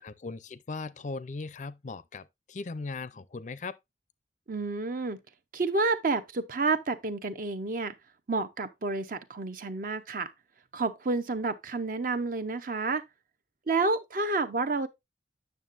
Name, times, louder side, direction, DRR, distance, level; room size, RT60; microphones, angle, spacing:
voice 1, 0.0-3.8, left 3 dB, 40° left, 0.5 m, -38 dB
voice 2, 4.5-5.2 5.5-7.9 8.3-10.3 10.7-13.0 13.7-14.9, right 3 dB, 50° right, 0.7 m, -29 dB
9.1 x 6.6 x 2.5 m
head